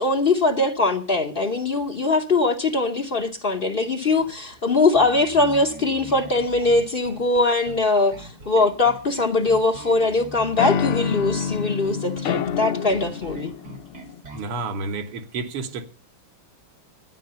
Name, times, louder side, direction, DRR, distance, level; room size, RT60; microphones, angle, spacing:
voice 1, 0.0-13.5, left 3 dB, 65° left, 0.5 m, -21 dB
voice 2, 1.5-1.9 4.1-4.6 14.3-15.9, right 3 dB, 85° right, 2.2 m, -32 dB
Bass guitar, 4.9-14.5, right 3 dB, 45° right, 2.8 m, -42 dB
sound 1, 9.1-9.9 10.6-14.2, left 7 dB, 85° left, 1.7 m, -28 dB
12.0 x 9.4 x 6.7 m
omnidirectional pair, 2.4 m